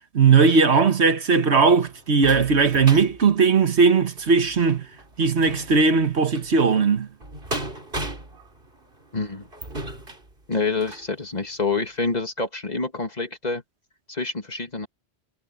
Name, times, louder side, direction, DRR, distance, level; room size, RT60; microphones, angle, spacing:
voice 1, 0.1-4.9 5.2-7.1, right 5 dB, 80° right, 1.7 m, -18 dB
sound 1, 1.3-11.1 11.7-11.8 12.1-12.2, right 1 dB, 55° right, 3.7 m, -37 dB
voice 2, 9.1-9.5 10.5-13.6 14.1-14.9, left 3 dB, 40° left, 2.1 m, -27 dB
omnidirectional pair, 1.1 m